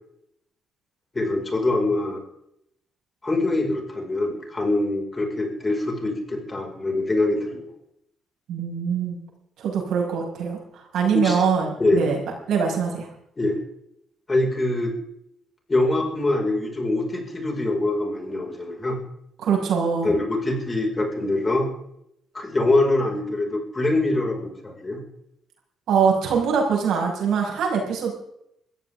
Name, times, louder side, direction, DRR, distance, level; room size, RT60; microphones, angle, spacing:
voice 1, 1.1-2.2 3.2-7.6 11.1-11.4 11.8-12.0 13.4-13.6 14.3-14.9 15.7-19.0 20.0-21.7 22.3-25.0, left 2 dB, 25° left, 1 dB, 5.0 m, -24 dB
voice 2, 8.5-9.2 9.6-12.2 12.5-13.1 19.4-20.1 25.9-28.1, right 6 dB, 75° right, 0 dB, 5.6 m, -23 dB
22.0 x 14.5 x 3.6 m, 0.76 s
cardioid pair, 90°, 0 cm